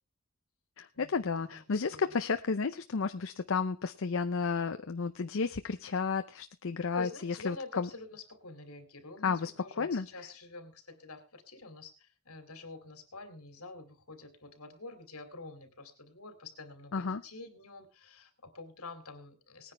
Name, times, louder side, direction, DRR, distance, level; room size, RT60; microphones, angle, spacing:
voice 1, 0.8-7.9 9.2-9.5 9.8-10.1 16.9-17.2, left 5 dB, 65° left, 0.6 m, -32 dB
voice 2, 1.5-2.0 6.9-19.7, left 3 dB, 80° left, 2.7 m, -47 dB
19.0 x 10.0 x 3.4 m
head